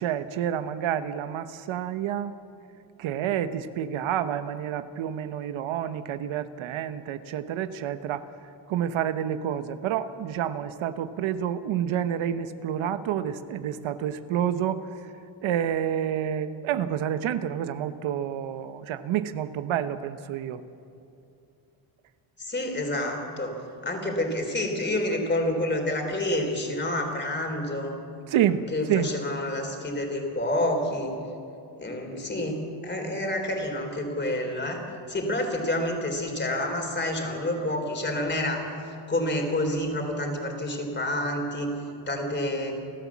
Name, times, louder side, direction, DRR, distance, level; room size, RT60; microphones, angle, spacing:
voice 1, 0.0-2.3 3.0-8.3 8.7-15.1 15.4-20.6 28.3-29.1, right 10 dB, 85° right, 11 dB, 1.0 m, -29 dB
voice 2, 22.4-27.9 28.7-31.1 31.8-34.8 35.1-38.7 39.1-41.7 42.1-42.7, left 1 dB, 25° left, 3 dB, 3.7 m, -28 dB
30.0 x 12.5 x 7.3 m, 2.7 s
cardioid pair, 145°, 46 cm